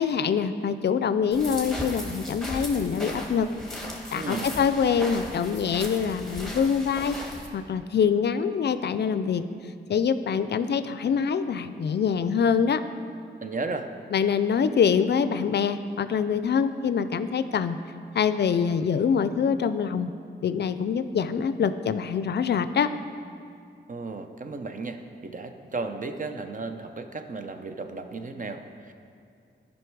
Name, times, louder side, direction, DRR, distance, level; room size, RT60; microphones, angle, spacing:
voice 1, 0.0-3.5 4.1-7.2 7.5-9.4 9.9-12.8 14.1-17.8 18.1-20.1 20.4-22.9, left 6 dB, 65° left, 12 dB, 0.4 m, -25 dB
sound 1, 1.3-7.5, left 1 dB, ahead, 1.4 m, -37 dB
voice 2, 4.2-4.5 13.4-13.9 23.9-28.9, right 3 dB, 45° right, 7 dB, 0.6 m, -34 dB
11.0 x 5.3 x 4.6 m, 2.4 s
cardioid pair, 60°, 19 cm